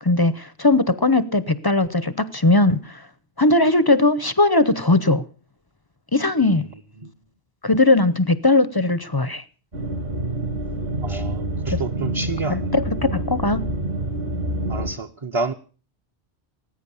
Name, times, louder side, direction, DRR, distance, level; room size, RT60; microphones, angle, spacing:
voice 1, 0.0-3.0 3.4-5.2 6.1-6.7 7.6-9.4 11.7-11.8 12.5-13.6, left 2 dB, 25° left, 0.6 m, -19 dB
sound 1, 9.7-14.9, right 1 dB, 60° right, 2.8 m, -27 dB
voice 2, 11.0-12.7 14.7-15.5, right 3 dB, 30° right, 0.8 m, -29 dB
19.5 x 9.0 x 6.9 m
omnidirectional pair, 1.1 m